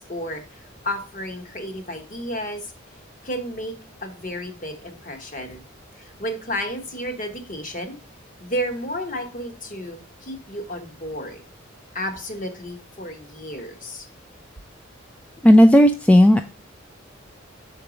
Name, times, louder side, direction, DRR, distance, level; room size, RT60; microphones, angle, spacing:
voice 1, 0.1-2.7 3.2-3.8 4.0-5.6 6.0-8.0 8.4-11.4 11.9-14.0, equal, 40° left, 5 dB, 1.2 m, -32 dB
voice 2, 15.4-16.4, equal, 5° left, 6 dB, 0.3 m, -12 dB
5.9 x 4.6 x 5.0 m, 0.35 s
head